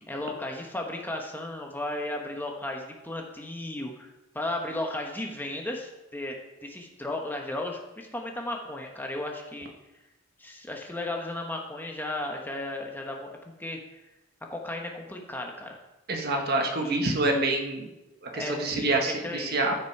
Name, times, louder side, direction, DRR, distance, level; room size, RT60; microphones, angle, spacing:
voice 1, 0.1-4.1 4.3-9.7 10.4-13.3 13.6-13.8 14.5-15.8 16.8-17.5 18.3-19.6, left 1 dB, 10° left, 1 dB, 1.1 m, -34 dB
voice 2, 16.1-17.9 18.2-19.7, right 2 dB, 50° right, 3 dB, 1.4 m, -27 dB
14.5 x 5.9 x 4.7 m, 1.0 s
head